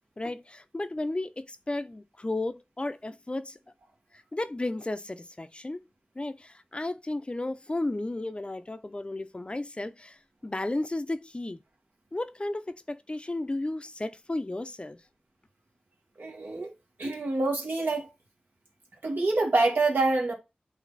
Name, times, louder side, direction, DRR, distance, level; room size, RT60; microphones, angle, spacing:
voice 1, 0.2-3.6 4.3-5.8 6.2-10.2 10.4-11.6 12.1-15.0, left 2 dB, 35° left, 0.6 m, -33 dB
voice 2, 16.2-16.7 17.0-18.1 19.0-20.3, right 3 dB, 80° right, 1.9 m, -26 dB
8.3 x 2.8 x 4.0 m
cardioid pair, 45°, 3 cm